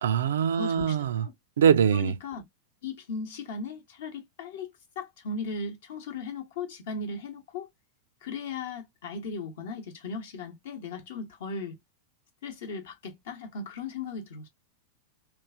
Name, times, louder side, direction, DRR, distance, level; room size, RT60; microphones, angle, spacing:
voice 1, 0.0-1.2 1.6-2.1, right 8 dB, 60° right, 0.3 m, -23 dB
voice 2, 0.6-1.3 1.9-2.4 2.8-4.7 5.0-7.7 8.2-11.8 12.4-14.5, left 4 dB, 55° left, 0.9 m, -37 dB
3.0 x 2.3 x 2.3 m
figure-of-eight pair, 90°, 0 cm